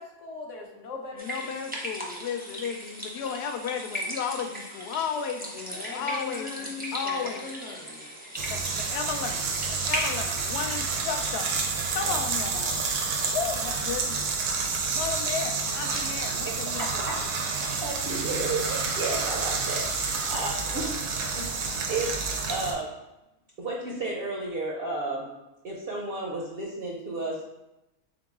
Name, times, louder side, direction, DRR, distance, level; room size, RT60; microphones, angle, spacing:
voice 1, 0.0-1.3 5.5-8.1, left 4 dB, 65° left, 2 dB, 0.9 m, -40 dB
voice 2, 1.1-7.5 8.5-11.5 11.9-12.7 13.3-14.3 14.9-17.1, left 6 dB, 80° left, 5 dB, 0.5 m, -34 dB
sound 1, 1.2-10.4, equal, 15° right, 0.3 m, -37 dB
sound 2, 8.4-22.7, right 4 dB, 90° right, 1.2 m, -29 dB
voice 3, 16.4-17.2 17.5-21.1 21.3-23.0 23.6-25.3 25.6-27.4, right 2 dB, 60° right, -2 dB, 0.6 m, -33 dB
3.8 x 3.7 x 3.5 m, 0.94 s
omnidirectional pair, 1.6 m